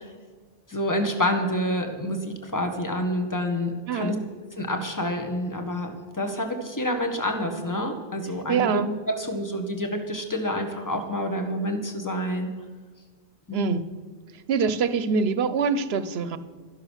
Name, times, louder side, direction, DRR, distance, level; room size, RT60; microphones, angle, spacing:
voice 1, 0.7-4.1 4.6-12.5 13.5-13.8, equal, 15° left, 4 dB, 1.5 m, -28 dB
voice 2, 3.9-4.2 8.5-8.9 13.5-13.8 14.5-16.4, right 5 dB, 70° right, 13 dB, 1.0 m, -24 dB
12.5 x 11.0 x 6.5 m, 1.5 s
omnidirectional pair, 1.1 m